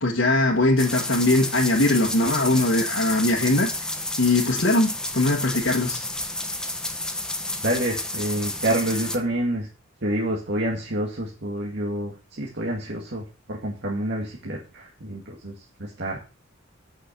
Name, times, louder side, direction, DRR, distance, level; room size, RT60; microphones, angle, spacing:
voice 1, 0.0-3.7 4.2-6.0, left 2 dB, 70° left, -2 dB, 1.6 m, -21 dB
sound 1, 0.8-9.2, left 1 dB, 5° left, 1.1 m, -30 dB
voice 2, 7.6-9.7 10.0-16.2, right 1 dB, 60° right, -2 dB, 2.0 m, -28 dB
8.5 x 6.2 x 6.6 m, 0.31 s
head